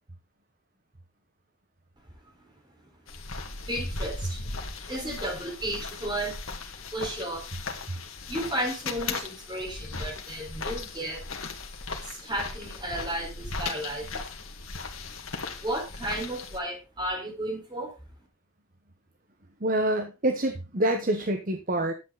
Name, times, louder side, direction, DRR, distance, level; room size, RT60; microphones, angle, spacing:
sound 1, 3.1-16.6, left 3 dB, 85° left, 2.0 m, -37 dB
voice 1, 3.5-4.5 4.9-6.4 6.7-7.5 8.2-11.3 12.0-14.2 15.6-17.9, right 1 dB, 20° right, 2 dB, 4.4 m, -33 dB
voice 2, 19.6-21.9, right 1 dB, 40° right, 6 dB, 1.1 m, -26 dB
11.5 x 8.4 x 4.0 m, 0.29 s
head